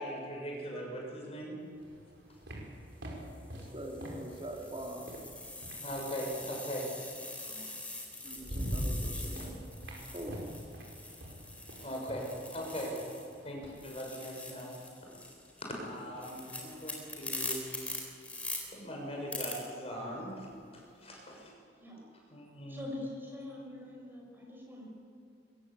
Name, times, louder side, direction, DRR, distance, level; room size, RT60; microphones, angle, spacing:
voice 1, 0.0-1.6 5.8-6.9 11.8-13.0 13.4-14.8 15.6-17.6 18.7-20.5 20.7-21.5 22.3-22.8, equal, 35° left, -1 dB, 6.7 m, -40 dB
sound 1, 1.8-6.3 7.6-7.7 8.1-13.8, equal, 75° right, 5.1 m, -42 dB
sound 2, 2.2-2.5 3.2-13.4 13.7-18.6 19.3-19.5, left 2 dB, 10° left, 4.3 m, -44 dB
voice 2, 3.5-5.1 8.2-9.6 10.1-10.6, right 1 dB, 30° right, 0 dB, 3.3 m, -43 dB
voice 3, 7.4-7.8 21.7-22.0 22.7-24.9, left 1 dB, 10° right, -2 dB, 6.5 m, -44 dB
23.0 x 20.0 x 8.4 m, 2.2 s
head